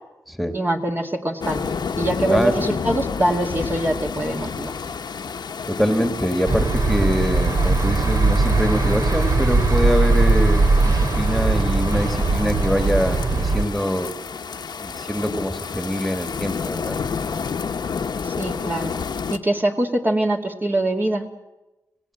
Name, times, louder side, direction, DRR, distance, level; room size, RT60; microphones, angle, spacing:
voice 1, 0.5-1.6 2.0-4.7 18.2-19.0 19.3-21.2, right 1 dB, 30° right, 2 dB, 2.4 m, -23 dB
sound 1, 1.4-19.4, left 5 dB, 80° left, 1.2 m, -30 dB
voice 2, 5.7-14.1 14.8-17.0, equal, ahead, 6 dB, 2.4 m, -24 dB
sound 2, 6.5-13.6, right 3 dB, 55° right, 2.7 m, -19 dB
30.0 x 17.5 x 7.9 m, 1.1 s
wide cardioid pair, 80°, 7 cm